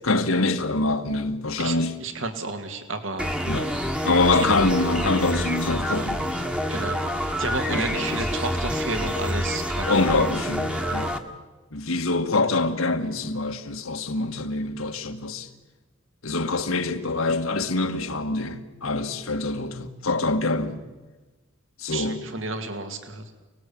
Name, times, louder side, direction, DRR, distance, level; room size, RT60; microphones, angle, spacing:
voice 1, 0.0-2.0 3.4-3.7 4.0-6.5 7.7-8.2 9.9-11.1 11.7-15.5 16.2-20.8 21.8-22.2, left 2 dB, 80° left, 1.8 m, -25 dB
voice 2, 1.6-3.3 4.3-4.5 6.7-10.1 21.9-23.2, right 3 dB, 65° right, 2.4 m, -32 dB
sound 1, 3.2-11.2, equal, 5° right, 1.4 m, -27 dB
28.5 x 19.5 x 8.6 m
head